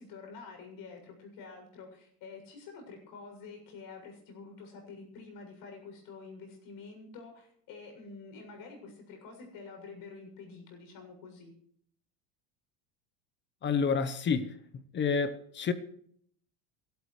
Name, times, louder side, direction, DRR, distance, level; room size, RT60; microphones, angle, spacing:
voice 1, 0.0-11.5, left 4 dB, 55° left, 7.3 m, -48 dB
voice 2, 13.6-14.6 14.9-15.7, left 5 dB, 30° left, 1.0 m, -29 dB
27.0 x 13.0 x 3.3 m
supercardioid pair, 140°, 40 cm